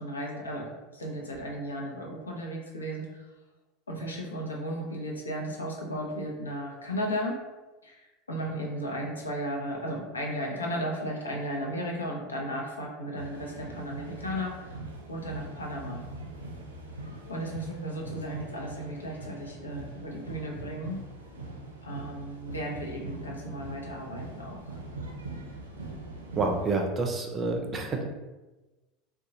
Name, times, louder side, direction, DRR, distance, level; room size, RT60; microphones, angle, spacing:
voice 1, 0.0-3.3 3.9-7.3 7.8-14.8 15.1-16.0 17.3-21.0 21.8-24.8, equal, 80° left, -1 dB, 0.6 m, -35 dB
sound 1, 13.2-26.7, right 2 dB, 80° right, 0.5 m, -42 dB
voice 2, 26.4-28.0, right 3 dB, 25° right, 3 dB, 0.5 m, -28 dB
3.6 x 2.3 x 2.7 m, 1.1 s
figure-of-eight pair, 75°, 0 cm